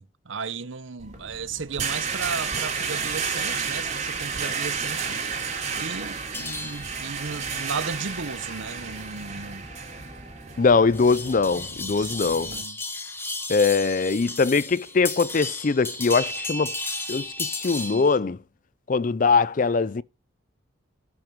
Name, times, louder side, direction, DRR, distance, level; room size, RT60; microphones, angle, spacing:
voice 1, 0.0-5.3 5.7-9.7 12.0-12.8, right 5 dB, 75° right, 0.9 m, -35 dB
sound 1, 1.0-12.6, right 5 dB, 35° right, 2.9 m, -32 dB
sound 2, 6.3-18.2, left 2 dB, 10° left, 1.5 m, -35 dB
voice 2, 10.6-12.5 13.5-16.7 17.1-18.4 18.9-20.0, left 4 dB, 40° left, 0.4 m, -22 dB
11.0 x 6.0 x 5.3 m
head